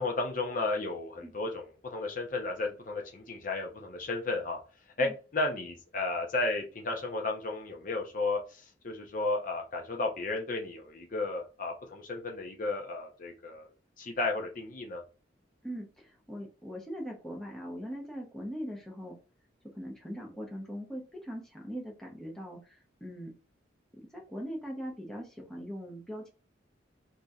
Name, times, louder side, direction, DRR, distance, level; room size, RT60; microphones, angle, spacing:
voice 1, 0.0-4.6 5.0-13.7 14.0-15.0, left 3 dB, 45° left, 2 dB, 0.7 m, -33 dB
voice 2, 15.6-19.2 19.8-23.3 23.9-26.3, equal, 5° left, -2 dB, 0.8 m, -41 dB
2.9 x 2.7 x 3.6 m, 0.34 s
head